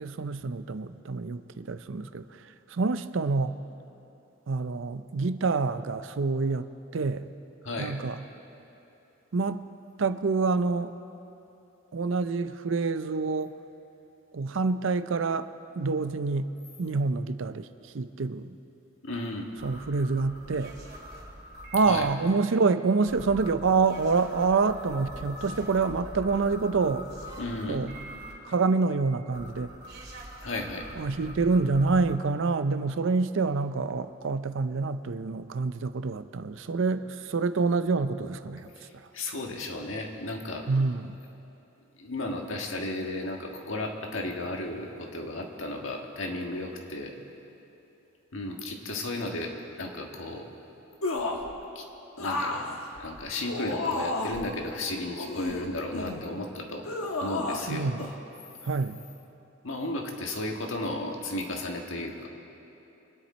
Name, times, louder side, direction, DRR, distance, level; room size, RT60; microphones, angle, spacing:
voice 1, 0.0-3.5 4.5-6.7 6.9-7.3 7.8-8.2 9.3-9.6 10.0-10.9 11.9-13.5 14.3-15.5 15.8-16.5 16.8-18.5 19.6-20.7 21.7-27.1 27.7-27.9 28.4-29.7 30.9-38.7 40.7-41.2 57.7-58.1 58.6-59.0, right 4 dB, 65° right, 12 dB, 0.5 m, -27 dB
voice 2, 7.6-8.0 19.0-19.5 21.9-22.1 27.4-27.8 30.4-30.9 39.1-40.7 42.0-47.1 48.3-50.5 51.7-51.8 52.2-52.6 53.0-56.9 57.2-57.9 59.6-62.3, left 2 dB, 70° left, 2 dB, 1.6 m, -34 dB
sound 1, 19.6-22.1 23.1-28.3 29.3-32.1, equal, 45° right, 2.8 m, -44 dB
sound 2, 51.0-51.5 52.2-54.5 55.2-56.3 56.8-57.7 58.0-58.1, left 2 dB, 90° left, 1.2 m, -32 dB
25.5 x 10.0 x 4.3 m, 2.9 s
head